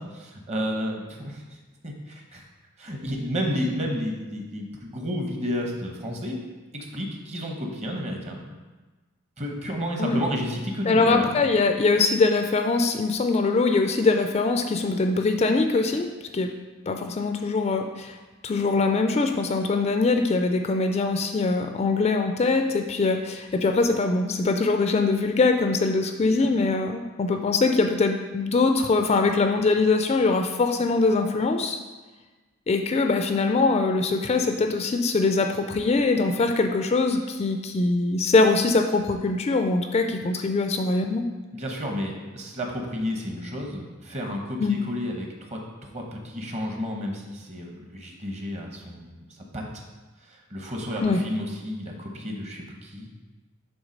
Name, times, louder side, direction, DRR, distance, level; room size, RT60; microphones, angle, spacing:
voice 1, 0.0-1.4 1.8-2.4 2.8-6.4 6.7-8.4 9.4-11.3 26.4-26.5 41.5-49.2 49.5-49.8 50.3-53.1, equal, 35° right, 1 dB, 1.0 m, -31 dB
voice 2, 10.9-16.5 16.9-18.2 18.4-31.8 32.7-41.2 44.6-44.8 51.0-51.2, left 3 dB, 30° left, 5 dB, 0.3 m, -22 dB
7.1 x 3.5 x 5.2 m, 1.3 s
head